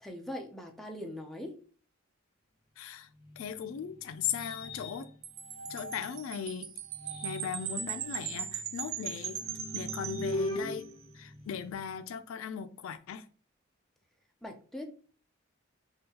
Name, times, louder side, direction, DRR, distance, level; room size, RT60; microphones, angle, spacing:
voice 1, 0.0-1.6 14.4-14.9, left 1 dB, ahead, 0.4 m, -41 dB
voice 2, 2.8-3.1 3.4-5.1 5.7-6.7 7.2-9.4 9.7-10.9 11.1-13.2, left 8 dB, 75° left, 0.3 m, -38 dB
sound 1, 3.2-6.3 6.8-12.0, left 1 dB, 25° left, 0.7 m, -41 dB
Wind chime, 5.2-10.9, right 9 dB, 80° right, 0.4 m, -39 dB
3.6 x 2.2 x 2.8 m
head